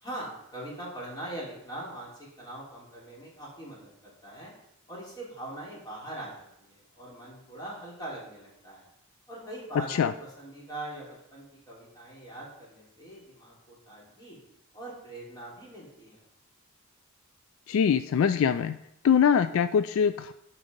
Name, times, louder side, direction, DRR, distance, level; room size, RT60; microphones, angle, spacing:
voice 1, 0.0-4.5 4.9-8.9 9.3-14.4 14.7-16.2, right 1 dB, 20° left, -5 dB, 3.1 m, -42 dB
voice 2, 17.7-18.8 19.0-20.3, left 7 dB, 65° left, 11 dB, 0.3 m, -23 dB
10.5 x 4.2 x 5.1 m, 0.79 s
head